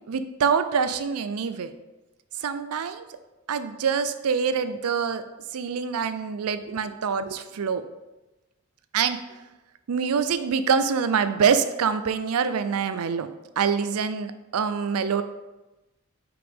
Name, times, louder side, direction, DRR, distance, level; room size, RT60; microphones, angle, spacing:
voice 1, 0.1-1.7 2.4-3.0 3.5-5.2 5.5-7.8 8.9-9.2 9.9-13.3 13.6-15.2, right 6 dB, 85° right, 11 dB, 0.4 m, -25 dB
6.0 x 5.0 x 3.5 m, 1.1 s
head